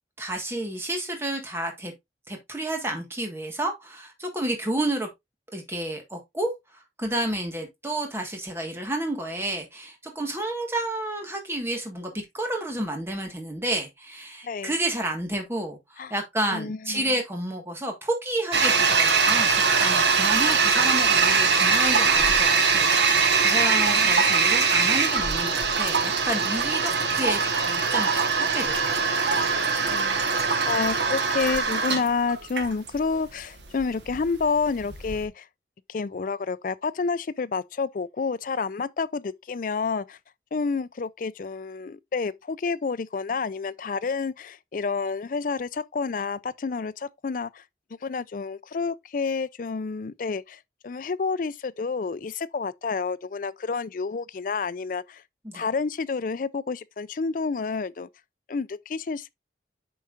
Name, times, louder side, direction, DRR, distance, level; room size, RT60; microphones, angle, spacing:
voice 1, 0.2-1.9 2.3-5.1 5.5-29.5 55.4-55.6, right 1 dB, 15° right, 1.6 m, -31 dB
voice 2, 16.5-17.1 23.6-24.2 29.9-35.5 35.9-40.2 40.5-47.6 48.0-55.2 55.5-58.1 58.5-59.3, left 4 dB, 50° left, 0.4 m, -29 dB
Toilet flush, 18.5-35.2, right 5 dB, 85° right, 1.2 m, -22 dB
8.3 x 5.6 x 2.5 m
head